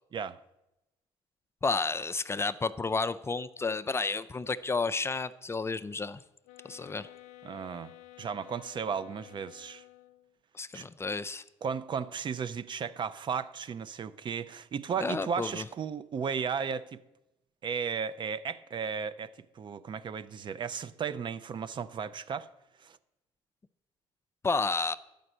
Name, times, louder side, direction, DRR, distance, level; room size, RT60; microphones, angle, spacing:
voice 1, 1.6-6.2 6.6-7.1 10.5-11.4 15.0-15.7 24.4-25.0, left 4 dB, 20° left, 0.4 m, -31 dB
sound 1, 6.4-10.3, left 16 dB, 80° left, 0.4 m, -52 dB
voice 2, 7.4-7.9 8.2-9.8 10.7-10.9 11.6-17.0 17.6-22.5 22.8-23.0, right 6 dB, 45° right, 0.5 m, -35 dB
9.8 x 5.2 x 7.8 m
supercardioid pair, 75°, 12 cm